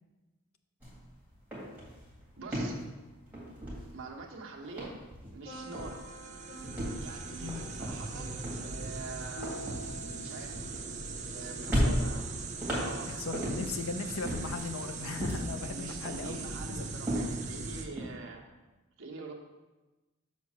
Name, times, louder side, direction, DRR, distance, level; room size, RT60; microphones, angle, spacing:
sound 1, 0.8-1.0 1.3-4.3 4.6-5.5 5.7-6.1 6.6-11.3 11.7-13.8 14.2-15.7 16.1-18.1, equal, 10° right, 2.1 m, -35 dB
voice 1, 2.4-2.8 3.9-4.9 5.3-6.0 7.0-8.3 8.6-9.5 10.2-10.6 11.2-12.3 12.8-13.1 15.6-18.4 19.0-19.3, right 3 dB, 70° right, 0 dB, 1.0 m, -45 dB
sound 2, 5.4-11.2, right 1 dB, 45° left, 2.0 m, -49 dB
sound 3, 5.5-17.9, right 3 dB, 35° right, 0.5 m, -40 dB
voice 2, 11.6-12.2 13.0-16.4 16.7-16.9, left 4 dB, 80° left, 7 dB, 0.7 m, -38 dB
6.4 x 4.2 x 6.1 m, 1.1 s
head